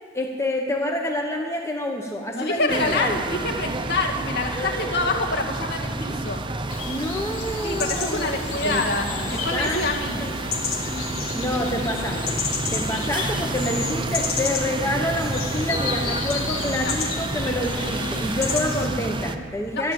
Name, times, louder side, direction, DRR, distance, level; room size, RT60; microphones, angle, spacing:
voice 1, 0.1-3.2 4.5-5.2 6.8-8.8 9.1-9.8 10.2-10.5 11.3-12.4 12.7-19.9, left 1 dB, 15° left, 0 dB, 0.9 m, -28 dB
voice 2, 2.3-6.4 7.6-10.2 16.7-16.9 18.5-18.7 19.7-19.9, left 2 dB, 50° left, 0 dB, 2.1 m, -26 dB
sound 1, 2.7-19.4, right 2 dB, 25° right, 0.6 m, -30 dB
sound 2, 6.7-18.9, left 5 dB, 85° left, 2.0 m, -31 dB
13.0 x 10.5 x 7.7 m, 2.4 s
head